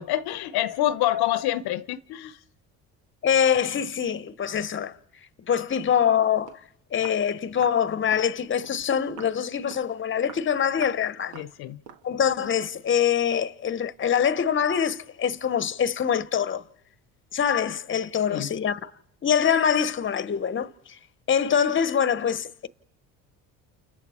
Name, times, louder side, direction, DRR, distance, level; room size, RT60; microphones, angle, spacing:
voice 1, 0.0-2.4 11.3-11.8 18.3-18.5, left 13 dB, 70° left, 0.9 m, -27 dB
voice 2, 3.2-5.0 5.5-6.6 6.9-11.5 12.0-16.6 17.3-18.9 19.2-21.0 21.3-22.7, left 8 dB, 30° left, 0.9 m, -24 dB
Walk footsteps, 6.5-6.7 7.0-7.2 7.6-7.8 8.1-8.3 8.6-8.8 9.2-9.4 9.7-9.9 10.3-10.5 10.8-11.0 11.3-11.5 11.9-12.1 12.4-12.6, right 7 dB, 85° right, 1.6 m, -44 dB
29.0 x 29.0 x 4.3 m
supercardioid pair, 75°, 39 cm